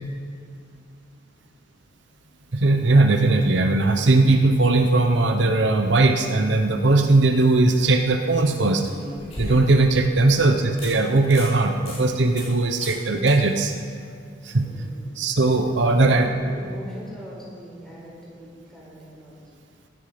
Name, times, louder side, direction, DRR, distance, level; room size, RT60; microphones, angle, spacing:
voice 1, 2.5-8.8 9.4-13.7 14.4-14.7 15.2-16.3, right 2 dB, 70° right, 5 dB, 0.9 m, -19 dB
sound 1, 8.6-9.9 10.4-10.5 10.8-10.9 11.2-11.5 11.9-12.0 12.4-12.5 12.8-13.0 13.3-13.4 16.5-16.6, left 1 dB, 35° left, 4.3 m, -35 dB
voice 2, 14.6-15.3 15.8-19.4, equal, 5° left, -6 dB, 4.6 m, -41 dB
16.0 x 12.5 x 5.2 m, 2.3 s
head